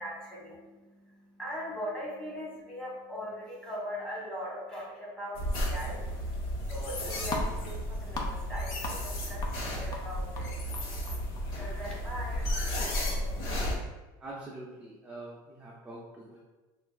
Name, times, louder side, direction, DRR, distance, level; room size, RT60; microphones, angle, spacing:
voice 1, 0.0-6.0 6.6-10.5 11.5-13.4, equal, 5° left, -6 dB, 1.3 m, -40 dB
sound 1, 5.3-13.7, equal, 65° left, 1.0 m, -33 dB
sound 2, 6.7-13.4, left 3 dB, 35° left, 0.6 m, -43 dB
voice 2, 14.2-16.4, right 2 dB, 10° right, -5 dB, 0.5 m, -44 dB
5.3 x 2.5 x 2.2 m, 1.2 s
supercardioid pair, 135°, 11 cm